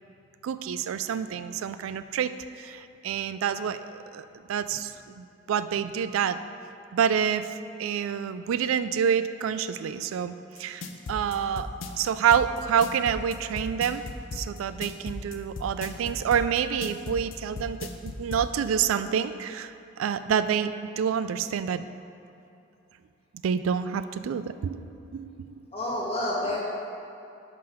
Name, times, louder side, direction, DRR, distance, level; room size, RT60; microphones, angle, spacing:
voice 1, 0.4-2.3 2.6-3.8 4.1-6.4 6.9-7.5 7.8-11.7 12.0-14.1 14.3-19.7 20.0-21.9 23.4-24.8 25.1-25.6, right 8 dB, 90° right, 13 dB, 0.3 m, -27 dB
sound 1, 10.6-18.5, left 3 dB, 80° left, 0.6 m, -36 dB
voice 2, 25.7-26.6, left 1 dB, 30° left, -5 dB, 1.5 m, -29 dB
5.6 x 5.1 x 5.6 m, 2.7 s
head